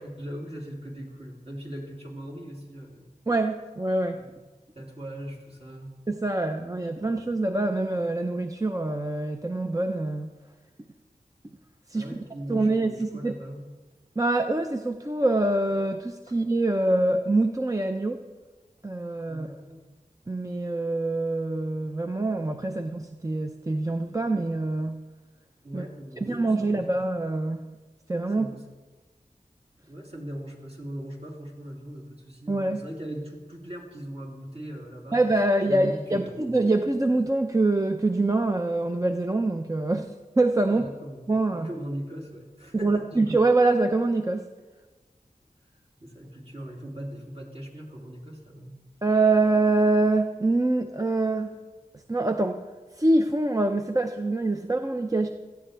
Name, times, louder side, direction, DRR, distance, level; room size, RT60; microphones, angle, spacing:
voice 1, 0.0-3.1 4.1-4.5 4.7-5.9 11.9-13.6 19.3-19.9 25.6-27.0 28.4-28.6 29.9-35.2 35.7-36.5 40.7-43.3 46.0-48.8, right 1 dB, 45° right, -2 dB, 3.1 m, -39 dB
voice 2, 3.3-4.2 6.1-10.3 11.9-12.1 12.5-13.3 14.2-18.2 18.8-19.5 20.3-25.0 25.7-25.8 26.2-27.7 28.1-28.5 32.5-32.8 35.1-40.8 41.3-41.7 42.7-44.5 49.0-51.5 52.1-52.6 53.0-55.3, right 2 dB, 25° right, 6 dB, 0.6 m, -25 dB
17.5 x 14.0 x 3.4 m, 1.3 s
wide cardioid pair, 65°, 15 cm